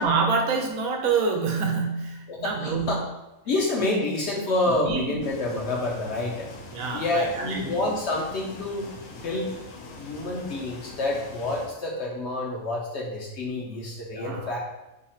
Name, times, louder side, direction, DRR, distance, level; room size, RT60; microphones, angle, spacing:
voice 1, 0.0-3.0 4.8-5.3 6.7-7.6 14.1-14.5, right 4 dB, 80° right, 2 dB, 1.1 m, -26 dB
voice 2, 2.3-3.0 3.5-6.5 6.9-8.9 9.2-9.5 10.0-14.6, left 2 dB, 65° left, -2 dB, 0.7 m, -28 dB
sound 1, 5.2-11.7, left 2 dB, 85° left, 1.1 m, -43 dB
2.8 x 2.3 x 4.2 m, 0.98 s
omnidirectional pair, 1.5 m